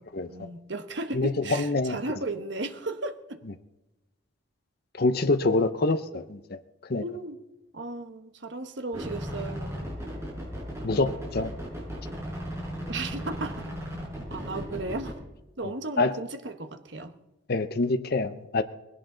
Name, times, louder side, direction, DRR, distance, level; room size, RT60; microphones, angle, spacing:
voice 1, 0.3-3.4 6.1-6.2 7.0-7.4 7.7-9.9 12.9-13.7 14.3-15.2 15.6-17.1, right 2 dB, 60° right, 8 dB, 1.2 m, -35 dB
voice 2, 1.1-2.0 5.0-6.4 6.9-7.0 10.8-11.5 16.0-16.1 17.5-18.6, left 3 dB, 50° left, 10 dB, 0.7 m, -25 dB
sound 1, 8.9-15.1, equal, 15° right, 5.9 m, -36 dB
20.0 x 16.5 x 3.9 m, 1.0 s
head